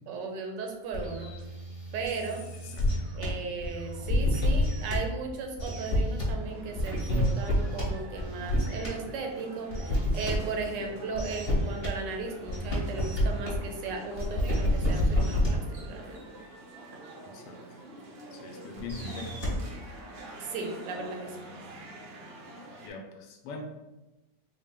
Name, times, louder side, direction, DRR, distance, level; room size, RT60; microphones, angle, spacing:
voice 1, 0.1-1.3 1.9-2.5 3.1-16.2 20.4-21.4, right 4 dB, 90° right, 3 dB, 1.3 m, -36 dB
sound 1, 0.9-3.3 3.6-5.0 5.6-6.3 6.8-7.9 8.2-8.9 9.7-10.4 11.2-11.9 12.5-13.6 14.2-15.6 18.8-19.6, left 1 dB, 25° left, 0.8 m, -29 dB
voice 2, 2.5-2.9 10.7-10.9 17.3-17.6 18.3-19.6 22.8-23.6, left 3 dB, 80° left, 3 dB, 1.2 m, -42 dB
sound 2, 6.4-22.9, right 1 dB, 75° right, 0.5 m, -47 dB
4.0 x 2.2 x 3.5 m, 1.1 s
omnidirectional pair, 1.8 m